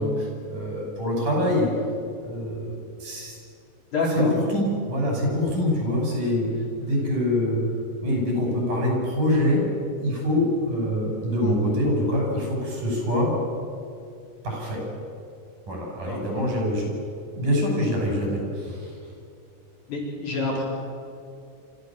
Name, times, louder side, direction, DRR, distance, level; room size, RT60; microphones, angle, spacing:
voice 1, 0.0-1.7 2.2-3.3 4.1-6.5 6.8-7.6 8.0-9.7 10.0-13.3 14.4-14.8 15.7-16.9 17.3-18.9, left 1 dB, 85° right, -1 dB, 7.8 m, -25 dB
voice 2, 3.9-4.3 16.1-16.2 19.9-20.6, left 2 dB, 70° left, -4 dB, 6.2 m, -26 dB
27.0 x 14.0 x 7.4 m, 2.4 s
omnidirectional pair, 3.6 m